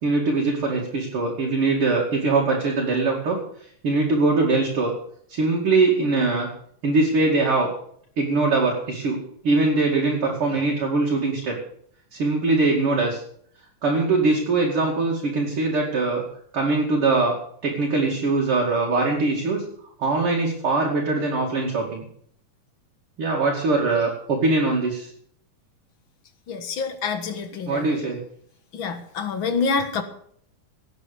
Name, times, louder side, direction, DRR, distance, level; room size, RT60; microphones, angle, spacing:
voice 1, 0.0-3.4 3.8-4.9 5.3-6.5 6.8-7.7 8.2-9.2 9.4-11.6 12.1-13.2 13.8-16.2 16.5-17.4 17.6-19.6 20.0-22.0 23.2-25.1 27.6-28.2, right 3 dB, 45° right, -2 dB, 3.1 m, -22 dB
voice 2, 26.5-27.9 28.7-30.0, left 5 dB, 50° left, 9 dB, 1.8 m, -27 dB
17.5 x 8.6 x 6.8 m, 0.63 s
omnidirectional pair, 3.6 m